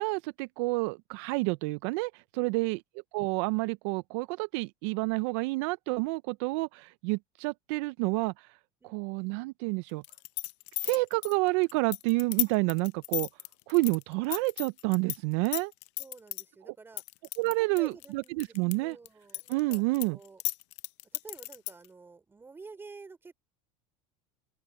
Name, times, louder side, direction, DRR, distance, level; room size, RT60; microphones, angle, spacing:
voice 1, 0.0-2.8 3.1-8.5 8.8-10.0 10.8-13.3 13.7-15.7 17.4-19.0 19.5-20.2, right 25 dB, 70° right, 0.5 m, -29 dB
sound 1, 10.0-15.2 15.4-16.4 17.0-18.7 19.1-21.9, left 24 dB, 70° left, 0.7 m, -34 dB
voice 2, 16.0-17.0 17.7-20.4 21.1-23.3, right 4 dB, 15° right, 4.0 m, -50 dB
open air
supercardioid pair, 135°, 15 cm